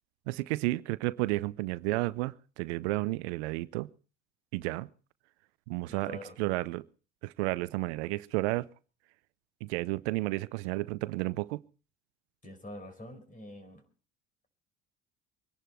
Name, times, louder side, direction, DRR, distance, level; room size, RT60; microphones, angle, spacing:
voice 1, 0.3-3.9 4.5-4.9 5.7-6.9 7.2-8.7 9.6-11.6, right 20 dB, 80° right, 0.7 m, -32 dB
voice 2, 5.9-6.4 12.4-13.8, left 1 dB, 25° left, 5.0 m, -45 dB
24.0 x 11.0 x 4.5 m
hypercardioid pair, 70°, 33 cm